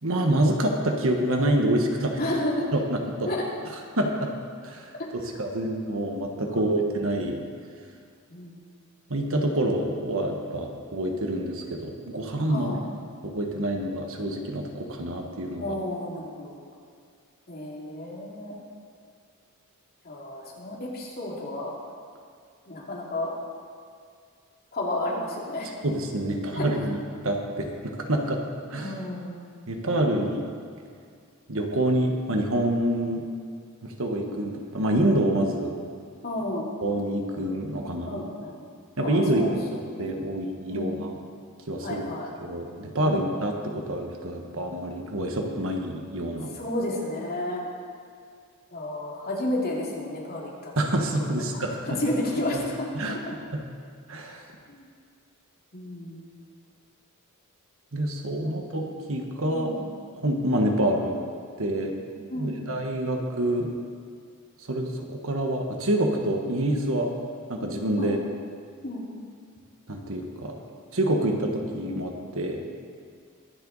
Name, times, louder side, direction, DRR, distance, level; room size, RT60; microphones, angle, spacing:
voice 1, 0.0-2.2 2.7-3.3 4.0-4.3 4.6-4.9 5.4-7.4 9.1-12.7 13.2-15.7 25.8-27.0 27.2-28.4 28.7-28.9 29.7-30.5 31.5-33.2 33.8-35.7 36.8-38.2 39.0-41.2 41.7-42.0 42.4-46.5 50.8-51.7 52.9-53.2 54.1-54.4 57.9-59.7 60.2-61.2 61.6-63.7 64.7-67.1 67.5-68.2 69.9-70.6 70.9-72.6, right 1 dB, 65° right, 2 dB, 1.5 m, -27 dB
voice 2, 2.2-2.7 3.2-3.4 5.2-5.3 6.5-6.8 8.3-8.6 12.5-12.8 15.5-16.5 17.5-18.6 20.0-21.7 22.7-23.3 24.7-25.7 26.5-26.7 28.7-29.4 36.2-36.7 38.1-38.7 39.0-39.5 40.0-40.1 40.7-41.0 41.8-42.3 43.0-43.5 46.5-47.6 48.7-50.7 51.2-51.5 51.8-52.9 54.7-54.9 55.7-56.3 58.4-58.6 59.5-59.8 62.3-62.6 68.0-68.1 68.8-69.1, left 1 dB, 45° left, -4 dB, 2.6 m, -32 dB
23.0 x 7.8 x 4.1 m, 2.2 s
head